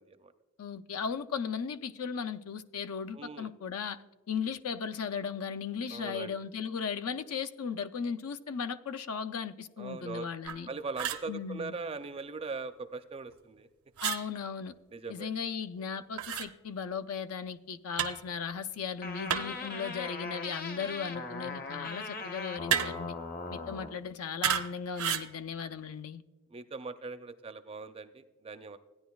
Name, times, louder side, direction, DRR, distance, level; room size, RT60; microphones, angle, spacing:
voice 1, 0.6-4.0 4.3-10.7 11.3-11.8 14.0-14.8 15.1-23.2 23.5-26.2, left 6 dB, 80° left, 0.5 m, -36 dB
voice 2, 3.1-3.5 5.9-6.3 9.8-10.3 10.7-13.7 14.9-15.3 26.5-28.8, right 4 dB, 25° right, 0.4 m, -40 dB
sound 1, 10.4-10.6 11.0-11.3 14.0-14.2 16.2-16.5 18.0-18.2 19.3-19.7 22.7-23.1 24.4-24.7 25.0-25.3, right 9 dB, 80° right, 0.6 m, -31 dB
sound 2, 19.0-24.0, left 3 dB, 40° left, 0.8 m, -40 dB
16.0 x 10.0 x 2.3 m
head